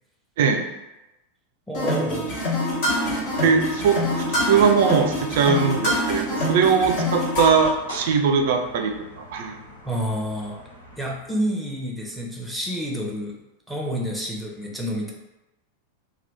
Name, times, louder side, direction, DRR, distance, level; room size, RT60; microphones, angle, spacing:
voice 1, 0.4-0.7 3.4-8.9 9.3-9.6, right 6 dB, 55° right, 5 dB, 0.4 m, -20 dB
sound 1, 1.7-7.7, left 1 dB, 45° left, 1.0 m, -25 dB
voice 2, 1.7-2.3 9.9-10.6 11.0-13.3 13.7-15.1, equal, ahead, -2 dB, 0.7 m, -28 dB
sound 2, 3.0-11.2, left 1 dB, 75° left, 0.7 m, -43 dB
2.9 x 2.3 x 3.3 m, 0.98 s
figure-of-eight pair, 90°, 0 cm